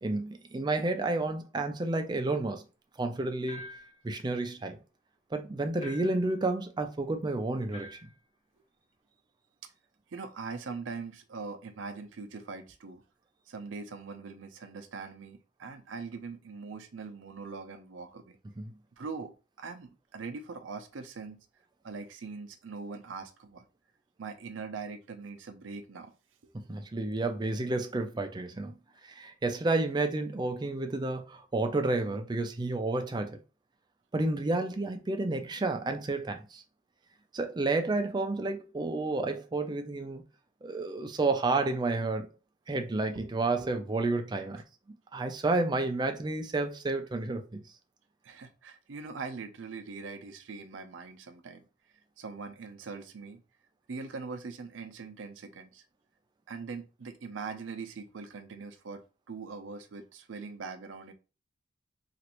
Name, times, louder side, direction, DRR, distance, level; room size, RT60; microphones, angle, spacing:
voice 1, 0.0-2.6 3.0-3.6 4.0-4.8 5.3-8.1 18.6-18.7 26.5-28.7 29.0-33.4 34.1-36.6 37.3-40.2 40.6-42.3 42.7-44.6 45.1-47.6, right 2 dB, 25° right, 0.4 m, -30 dB
sound 1, 3.5-4.0 5.8-6.3 7.7-8.1, left 2 dB, 35° left, 0.8 m, -46 dB
voice 2, 10.1-13.0 13.5-18.4 19.0-21.4 21.8-23.7 24.2-26.1 43.1-43.3 43.6-43.7 44.6-44.7 48.2-51.6 52.2-53.4 53.9-55.8 56.5-59.0 59.3-61.1, right 4 dB, 90° right, 0.5 m, -42 dB
3.1 x 2.5 x 2.9 m
head